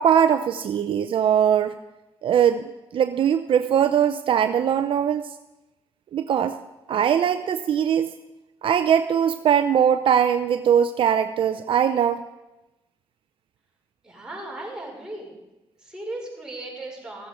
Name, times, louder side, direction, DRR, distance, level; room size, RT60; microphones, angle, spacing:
voice 1, 0.0-1.7 2.2-5.3 6.1-6.6 6.9-8.1 8.6-12.2, right 8 dB, 65° right, 9 dB, 0.5 m, -21 dB
voice 2, 14.0-15.3 15.8-17.3, right 2 dB, 10° right, -3 dB, 5.1 m, -36 dB
16.0 x 8.0 x 5.0 m, 1.0 s
cardioid pair, 70°, 10 cm